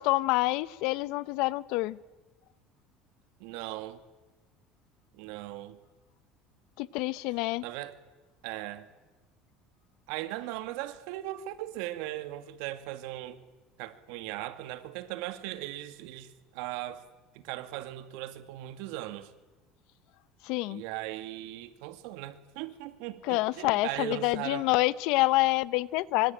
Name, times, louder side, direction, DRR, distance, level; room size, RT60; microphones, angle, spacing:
voice 1, 0.0-2.0 6.8-7.6 20.4-20.8 23.3-26.3, left 20 dB, 70° left, 0.9 m, -27 dB
voice 2, 3.4-4.0 5.1-5.8 7.6-8.0 8.4-8.9 10.1-13.4 13.8-17.0 17.3-19.3 20.7-24.7, right 15 dB, 80° right, 2.2 m, -38 dB
25.5 x 24.5 x 9.0 m
cardioid pair, 155°, 0 cm